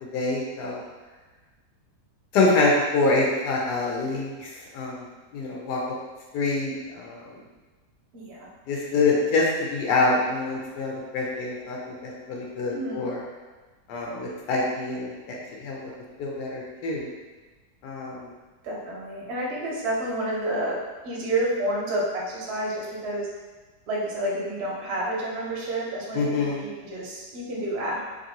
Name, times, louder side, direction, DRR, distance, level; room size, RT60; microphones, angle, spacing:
voice 1, 0.1-0.8 2.3-5.0 5.3-5.8 6.3-7.4 8.7-13.2 13.9-15.9 16.2-17.1 17.8-18.3 26.1-26.6, left 3 dB, 80° left, -2 dB, 1.2 m, -26 dB
voice 2, 8.1-8.5 12.7-13.1 18.6-23.3 23.9-28.0, right 1 dB, 55° right, -4 dB, 0.7 m, -29 dB
3.0 x 2.6 x 2.7 m, 1.3 s
omnidirectional pair, 1.8 m